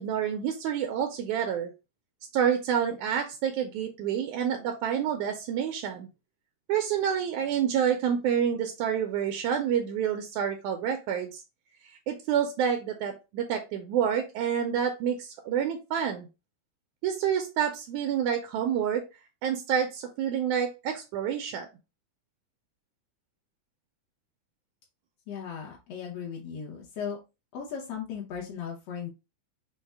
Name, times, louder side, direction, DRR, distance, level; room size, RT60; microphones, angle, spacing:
voice 1, 0.0-1.7 2.3-6.1 6.7-11.4 12.1-16.3 17.0-19.0 19.4-21.7, right 8 dB, 80° right, 4 dB, 1.9 m, -28 dB
voice 2, 25.3-27.2 27.5-29.1, left 7 dB, 70° left, -2 dB, 1.6 m, -37 dB
5.3 x 2.0 x 3.4 m, 0.28 s
omnidirectional pair, 3.5 m